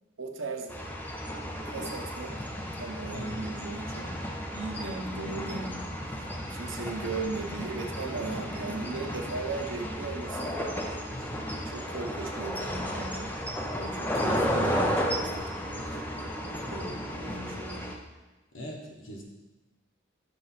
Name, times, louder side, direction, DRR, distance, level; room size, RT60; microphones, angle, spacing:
voice 1, 0.2-0.8 1.7-2.3 2.8-4.0 4.5-5.8 6.2-6.3 6.5-10.5 11.7-13.3 13.8-16.0 16.7-17.8, right 3 dB, 70° right, 4 dB, 0.8 m, -37 dB
sound 1, 0.7-17.9, equal, 10° left, 0.5 m, -33 dB
voice 2, 3.1-3.4 11.1-11.5 18.5-19.2, equal, 65° left, 0 dB, 1.2 m, -41 dB
6.2 x 3.3 x 5.6 m, 1.1 s
head